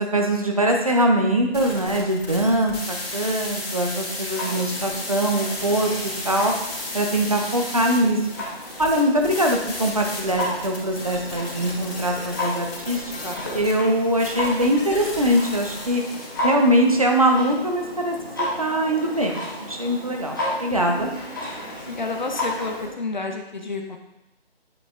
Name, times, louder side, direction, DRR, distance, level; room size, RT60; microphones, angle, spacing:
voice 1, 0.0-5.9 6.2-6.5 6.9-8.2 8.8-16.0 16.4-18.1 18.6-21.1, right 1 dB, 35° right, 2 dB, 0.6 m, -22 dB
sound 1, 1.5-16.4, left 2 dB, 70° left, 2.0 m, -34 dB
Clock, 4.3-22.9, left 1 dB, 20° left, 0.9 m, -33 dB
voice 2, 21.9-24.0, left 3 dB, 45° left, 4 dB, 0.6 m, -30 dB
8.2 x 5.1 x 2.4 m, 0.95 s
figure-of-eight pair, 170°, 32 cm